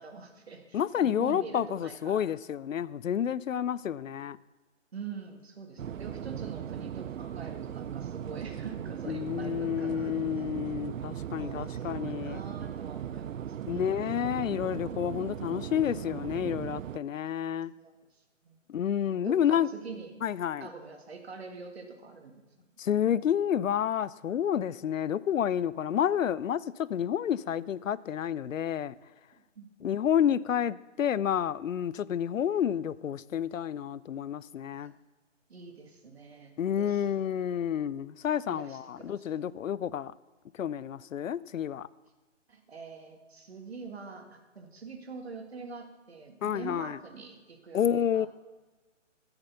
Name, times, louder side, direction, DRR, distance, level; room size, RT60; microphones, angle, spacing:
voice 1, 0.0-2.2 4.9-10.5 11.4-14.4 17.8-18.6 19.3-20.1 20.6-22.4 29.6-29.7 34.7-34.9 35.5-37.1 38.5-39.5 42.5-48.3, right 4 dB, 55° right, 1.8 m, -45 dB
voice 2, 0.7-4.4 9.1-12.4 13.7-17.7 18.7-19.7 20.2-20.7 22.8-28.9 29.8-34.9 36.6-40.1 40.6-41.9 46.4-47.0 47.7-48.3, left 9 dB, 85° left, 0.6 m, -29 dB
sound 1, 5.8-17.0, right 9 dB, 90° right, 0.5 m, -38 dB
14.0 x 5.9 x 6.8 m
hypercardioid pair, 175°, 38 cm